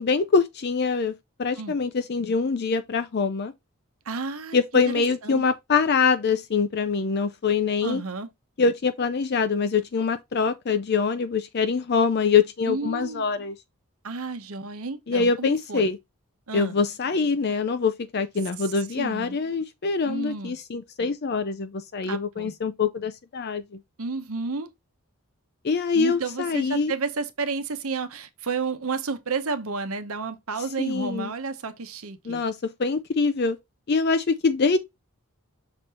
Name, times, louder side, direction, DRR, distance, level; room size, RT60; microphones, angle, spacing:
voice 1, 0.0-3.5 4.5-8.0 8.6-13.5 15.1-16.0 16.5-23.8 25.6-26.9 30.8-31.3 32.3-33.6 33.9-34.8, left 5 dB, 45° left, 0.4 m, -24 dB
voice 2, 4.0-5.4 7.8-8.3 12.7-13.2 14.0-15.9 16.5-16.8 18.6-19.4 20.0-20.6 22.0-22.5 24.0-24.7 25.9-32.4, right 4 dB, 75° right, 1.0 m, -31 dB
6.1 x 3.9 x 4.2 m
head